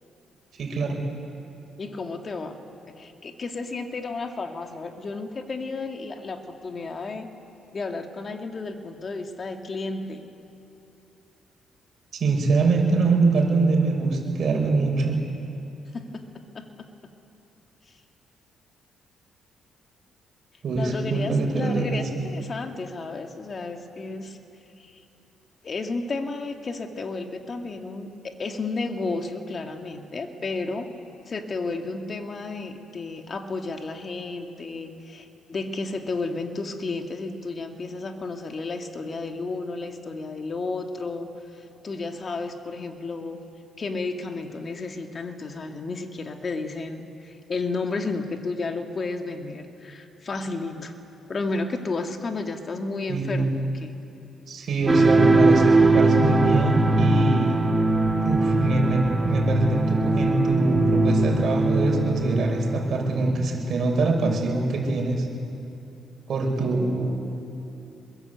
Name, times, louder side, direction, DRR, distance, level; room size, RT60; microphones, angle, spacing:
voice 1, 0.6-1.0 12.2-15.2 20.6-22.0 53.1-53.4 54.5-57.6 58.2-65.3 66.3-67.2, right 3 dB, 60° right, 1 dB, 6.0 m, -24 dB
voice 2, 1.8-2.6 2.9-7.3 7.7-10.2 15.9-16.2 16.5-16.9 20.7-24.4 24.8-25.0 25.6-30.9 31.3-43.4 43.8-50.9 51.3-53.9, left 3 dB, 40° left, 4 dB, 2.3 m, -32 dB
sound 1, 54.9-63.4, right 2 dB, 20° right, 2.2 m, -21 dB
26.0 x 22.0 x 8.3 m, 2.8 s
cardioid pair, 90°, 0 cm